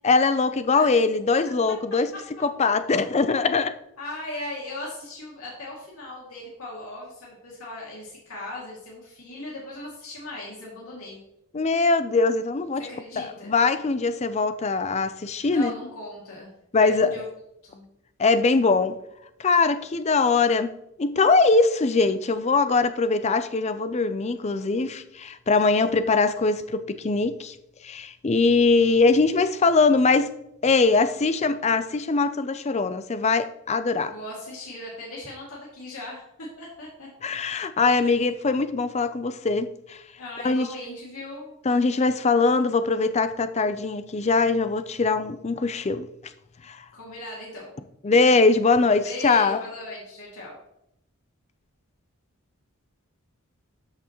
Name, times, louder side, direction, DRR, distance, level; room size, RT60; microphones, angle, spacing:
voice 1, 0.0-2.1 2.4-3.7 11.5-12.9 13.2-15.7 16.7-17.2 18.2-19.0 19.4-27.5 27.8-30.3 30.6-34.1 37.2-40.0 40.4-40.7 41.7-46.1 46.6-46.8 48.0-49.6, left 4 dB, 30° left, 0.4 m, -22 dB
voice 2, 4.0-11.2 12.8-13.6 15.5-17.2 17.6-17.8 34.1-37.1 38.0-38.2 40.2-41.5 46.9-47.7 49.0-50.5, left 1 dB, 85° left, 2.4 m, -38 dB
13.0 x 5.9 x 3.0 m
head